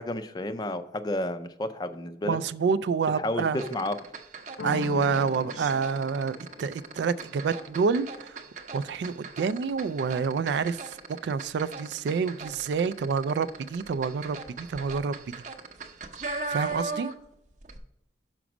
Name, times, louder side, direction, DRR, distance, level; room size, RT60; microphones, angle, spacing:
voice 1, 0.0-2.4 3.2-4.0, left 1 dB, 25° left, 10 dB, 0.4 m, -31 dB
voice 2, 2.2-3.6 4.6-8.4 8.7-15.4 16.5-17.1, right 5 dB, 75° right, 16 dB, 0.3 m, -28 dB
sound 1, 3.5-17.3 17.6-17.8, right 3 dB, 45° right, 0.7 m, -39 dB
sound 2, 4.6-10.1, left 5 dB, 90° left, 0.4 m, -42 dB
6.0 x 5.0 x 5.9 m, 0.82 s
head